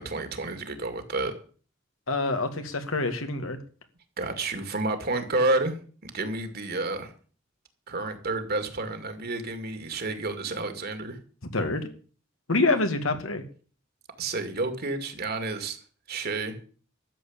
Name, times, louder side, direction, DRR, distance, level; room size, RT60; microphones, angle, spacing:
voice 1, 0.0-1.3 4.2-5.8 6.0-7.1 7.9-11.2 14.2-15.8 16.1-16.6, right 2 dB, 50° right, 8 dB, 2.3 m, -30 dB
voice 2, 2.1-3.6 11.5-11.9 12.5-13.4, left 2 dB, 90° left, 7 dB, 2.1 m, -26 dB
13.0 x 7.3 x 8.8 m, 0.42 s
head